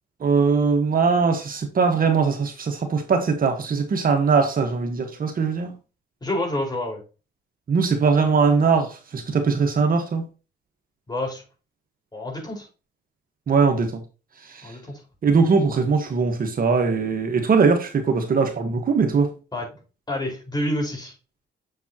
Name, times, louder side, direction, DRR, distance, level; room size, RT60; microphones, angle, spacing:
voice 1, 0.2-5.7 7.7-10.3 13.5-14.0 14.4-14.8 15.2-19.3, right 5 dB, 45° right, 1.3 m, -21 dB
voice 2, 6.2-7.0 11.1-11.4 12.1-12.7 14.6-15.0 19.5-19.7 20.1-21.1, left 1 dB, 20° left, 4.6 m, -28 dB
7.2 x 7.0 x 2.9 m
cardioid pair, 90°, 20 cm